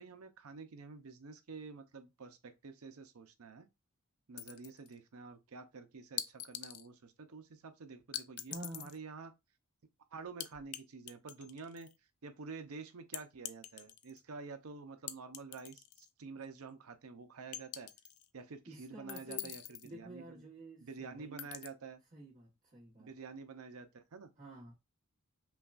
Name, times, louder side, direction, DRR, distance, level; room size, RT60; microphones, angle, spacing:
voice 1, 0.0-3.7 4.3-9.3 10.1-11.9 12.2-17.9 18.3-19.6 19.9-20.4 20.8-22.0 23.0-24.3, right 4 dB, 80° right, 0.6 m, -49 dB
sound 1, 4.4-4.9 6.2-6.9 8.1-9.0 10.4-10.8 11.1-11.9 13.1-14.2 15.1-16.1 16.4-16.5 17.5-18.3 19.1-19.9 21.4-21.7, left 12 dB, 85° left, 0.4 m, -44 dB
voice 2, 8.5-8.9 18.7-19.5 19.8-21.5 22.1-23.1 24.4-24.7, right 1 dB, 35° right, 1.2 m, -50 dB
5.6 x 2.3 x 2.5 m
head